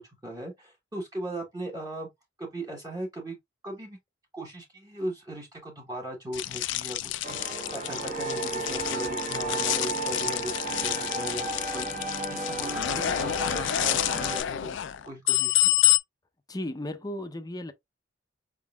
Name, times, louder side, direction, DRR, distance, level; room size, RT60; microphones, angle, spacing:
voice 1, 0.0-2.1 2.4-3.4 3.6-4.0 4.3-11.9 12.3-14.8 15.0-15.7, right 1 dB, 20° right, 1.1 m, -38 dB
sound 1, 6.3-16.0, left 14 dB, 70° left, 0.4 m, -28 dB
sound 2, 7.2-14.4, right 2 dB, 45° right, 1.3 m, -33 dB
voice 2, 16.5-17.7, left 1 dB, 20° left, 0.6 m, -35 dB
4.9 x 3.6 x 2.3 m
head